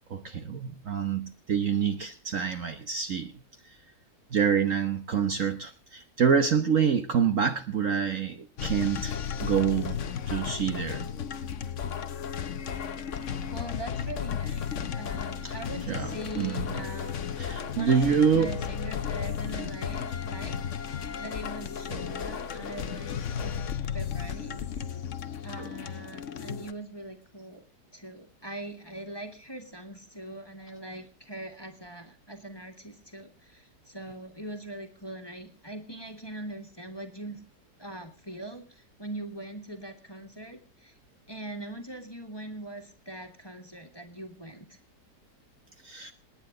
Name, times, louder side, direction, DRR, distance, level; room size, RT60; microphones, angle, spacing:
voice 1, 0.1-3.3 4.3-11.1 15.4-15.5 15.9-16.7 17.4-18.5 21.9-22.1 25.6-25.7 45.8-46.1, right 7 dB, 50° right, 1.2 m, -27 dB
sound 1, 8.6-26.7, left 7 dB, 50° left, 1.0 m, -34 dB
voice 2, 13.5-17.3 17.8-20.6 20.9-23.6 23.9-24.9 25.4-27.6 27.9-37.4 37.8-40.9 41.3-44.8, right 1 dB, 15° left, 1.9 m, -42 dB
27.5 x 9.9 x 3.9 m
omnidirectional pair, 1.9 m